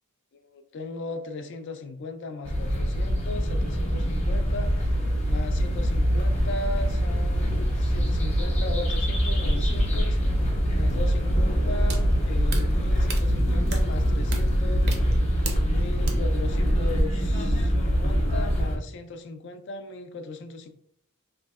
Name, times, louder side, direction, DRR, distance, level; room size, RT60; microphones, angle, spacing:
voice 1, 0.3-10.2 10.7-15.0 15.6-20.7, left 2 dB, 55° left, 8 dB, 0.3 m, -37 dB
sound 1, 2.4-18.8, equal, 30° left, 0.8 m, -24 dB
sound 2, 10.8-16.1, right 3 dB, 45° right, 0.5 m, -38 dB
3.1 x 2.6 x 2.3 m, 0.67 s
head